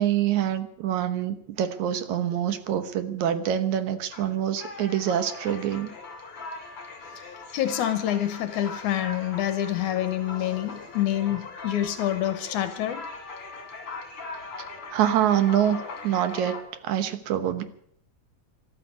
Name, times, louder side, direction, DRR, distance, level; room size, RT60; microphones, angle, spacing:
voice 1, 0.0-5.9 14.9-15.8 16.0-16.6 16.8-17.6, right 10 dB, 70° right, 10 dB, 2.4 m, -25 dB
sound 1, 4.1-16.6, left 3 dB, 45° left, 3.3 m, -40 dB
voice 2, 7.5-13.0, left 12 dB, 70° left, 10 dB, 2.2 m, -27 dB
13.5 x 12.5 x 8.2 m, 0.66 s
omnidirectional pair, 3.7 m